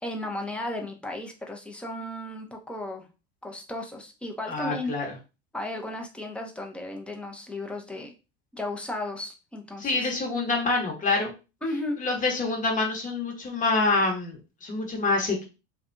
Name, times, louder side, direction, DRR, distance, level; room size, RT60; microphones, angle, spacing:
voice 1, 0.0-3.1 3.4-4.9 5.5-8.1 8.5-10.1 11.6-12.0, left 1 dB, 5° left, 2 dB, 0.6 m, -34 dB
voice 2, 4.5-5.1 9.8-11.3 12.0-15.5, left 3 dB, 25° left, 0 dB, 1.0 m, -26 dB
2.6 x 2.2 x 2.5 m, 0.30 s
hypercardioid pair, 90°, 32 cm